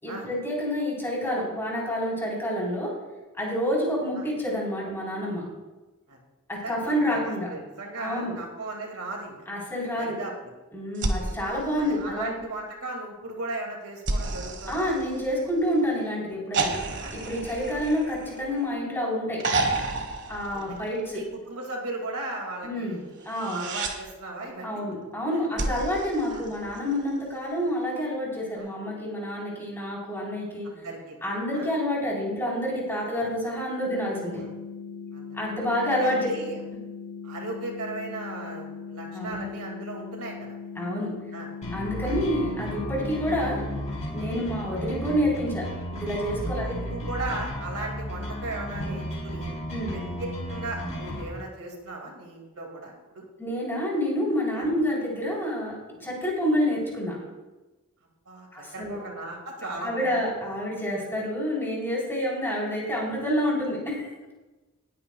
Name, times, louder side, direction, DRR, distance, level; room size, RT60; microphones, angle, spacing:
voice 1, 0.0-2.9 3.3-5.4 6.5-7.5 8.0-8.3 9.5-10.2 10.7-12.3 14.7-16.7 17.1-19.4 20.3-21.2 22.6-23.0 23.3-23.6 24.6-30.7 31.2-34.4 35.3-36.3 39.1-39.4 40.8-41.1 41.7-43.6 44.1-45.6 45.9-46.8 49.7-50.0 53.4-55.7 56.0-57.2 58.5-59.0 59.8-64.3, equal, 10° left, -4 dB, 4.0 m, -28 dB
voice 2, 6.6-9.4 10.0-10.3 11.1-11.2 11.8-14.9 17.0-17.1 17.7-17.8 20.5-20.7 21.1-23.0 23.4-24.8 25.3-25.8 26.3-26.4 28.6-28.7 30.6-31.2 31.5-31.7 34.3-34.5 35.1-35.3 35.9-36.6 37.2-40.4 41.3-41.5 42.0-42.2 44.3-44.6 46.6-49.5 49.9-50.0 50.5-53.2 54.5-54.7 58.3-58.5 58.7-60.2 61.0-61.1, right 2 dB, 75° right, 1 dB, 2.4 m, -37 dB
sound 1, 11.0-12.5 14.1-15.7 16.5-18.8 19.4-21.2 23.2-24.0 25.6-27.1 28.6-28.7, right 3 dB, 55° right, 1.4 m, -31 dB
sound 2, 33.9-43.9, left 5 dB, 70° left, 2.1 m, -40 dB
sound 3, 41.6-51.2, equal, 30° left, 3.5 m, -34 dB
19.5 x 9.3 x 2.4 m, 1.1 s
head